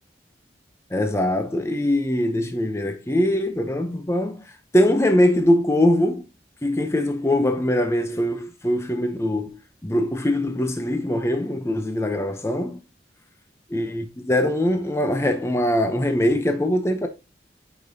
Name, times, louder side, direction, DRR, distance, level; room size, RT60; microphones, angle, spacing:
voice 1, 0.9-4.4 4.7-6.2 6.6-9.5 9.8-12.8 13.7-17.1, left 1 dB, 15° left, 0.6 m, -22 dB
9.1 x 4.9 x 2.7 m
head